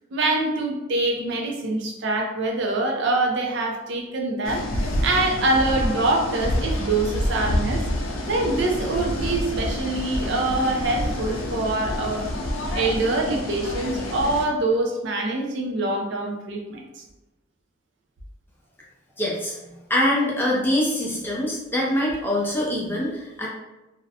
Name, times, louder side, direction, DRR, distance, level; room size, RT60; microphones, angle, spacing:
voice 1, 0.1-4.6 5.0-7.8 8.3-12.3 12.7-17.0, right 2 dB, 55° right, 1 dB, 0.4 m, -24 dB
sound 1, 4.4-14.5, left 1 dB, 75° left, 0.4 m, -28 dB
voice 2, 19.2-23.5, left 1 dB, 10° left, -4 dB, 0.4 m, -24 dB
2.4 x 2.1 x 2.7 m, 1.0 s
head